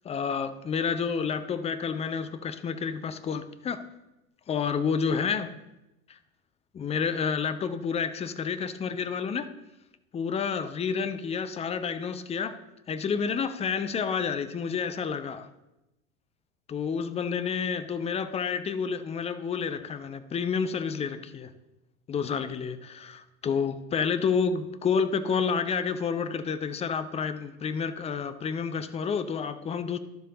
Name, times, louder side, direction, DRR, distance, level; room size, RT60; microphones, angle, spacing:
voice 1, 0.0-3.8 4.5-5.5 6.1-6.2 6.7-9.5 10.1-12.6 12.9-15.5 16.7-21.5 22.1-30.0, left 6 dB, 15° left, 11 dB, 0.5 m, -29 dB
12.0 x 7.0 x 3.8 m, 0.96 s
figure-of-eight pair, 80°, 44 cm